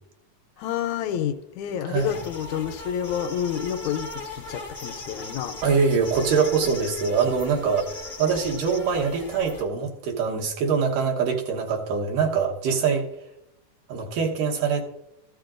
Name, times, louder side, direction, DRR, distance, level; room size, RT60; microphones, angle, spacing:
voice 1, 0.6-5.6, left 9 dB, 75° left, 6 dB, 1.8 m, -29 dB
voice 2, 1.9-2.2 5.6-13.1 13.9-14.8, right 5 dB, 80° right, 1 dB, 2.8 m, -24 dB
sound 1, 2.0-9.6, left 3 dB, 40° left, 0.9 m, -38 dB
14.5 x 13.5 x 2.5 m, 0.86 s
omnidirectional pair, 3.8 m